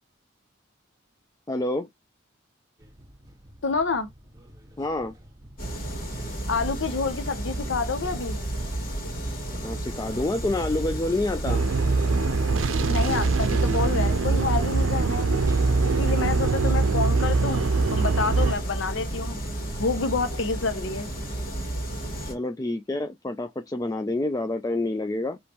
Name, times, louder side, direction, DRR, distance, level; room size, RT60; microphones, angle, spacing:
voice 1, 1.5-1.9 4.8-5.1 9.5-11.6 22.2-25.4, left 2 dB, 15° left, 0.3 m, -28 dB
sound 1, 2.8-20.5, equal, 15° right, 1.2 m, -49 dB
voice 2, 3.6-4.1 6.5-8.4 12.8-15.3 15.8-19.4 19.8-21.1, left 4 dB, 70° left, 0.7 m, -28 dB
sound 2, 5.6-22.3, right 1 dB, 45° left, 2.0 m, -32 dB
sound 3, 11.4-18.5, right 3 dB, 85° right, 0.5 m, -23 dB
5.1 x 3.1 x 2.9 m
head